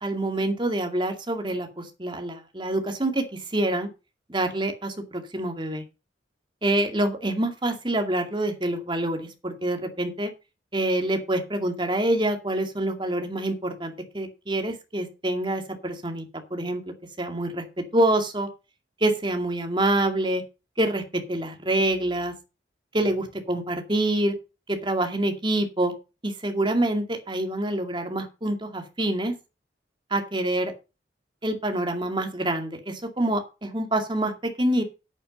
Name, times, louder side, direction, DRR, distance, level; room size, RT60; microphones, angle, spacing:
voice 1, 0.0-3.9 4.3-5.8 6.6-10.3 10.7-16.2 16.5-16.8 17.2-18.5 19.0-20.4 20.8-22.3 22.9-24.4 24.7-25.9 26.2-29.3 30.1-30.7 31.4-34.8, right 1 dB, 25° right, 5 dB, 2.3 m, -26 dB
8.7 x 8.7 x 5.2 m, 0.29 s
head